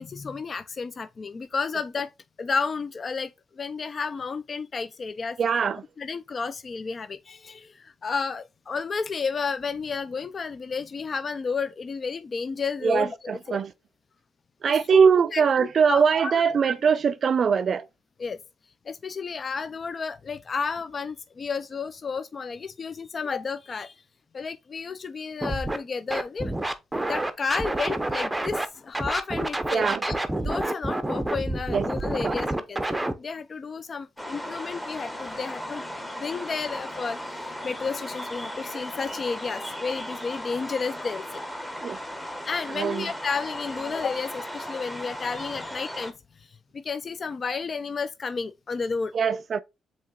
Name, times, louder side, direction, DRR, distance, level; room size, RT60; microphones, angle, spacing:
voice 1, 0.0-2.1 2.4-5.4 6.0-13.6 14.7-16.3 18.2-18.4 18.9-24.0 24.3-26.5 27.1-35.8 36.1-41.5 42.5-49.1, left 5 dB, 40° left, 0.3 m, -32 dB
voice 2, 5.4-5.8 12.8-13.7 14.6-17.9 29.7-30.0 31.7-31.9 32.2-32.3 41.8-42.0 42.7-43.1 49.1-49.6, right 6 dB, 50° right, 0.3 m, -22 dB
Scratching (performance technique), 25.4-25.8 26.1-28.7 28.9-33.1, right 1 dB, 10° right, 0.6 m, -28 dB
sound 1, 34.2-46.1, equal, 10° left, 1.0 m, -36 dB
7.4 x 2.8 x 2.3 m
cardioid pair, 90°, 0 cm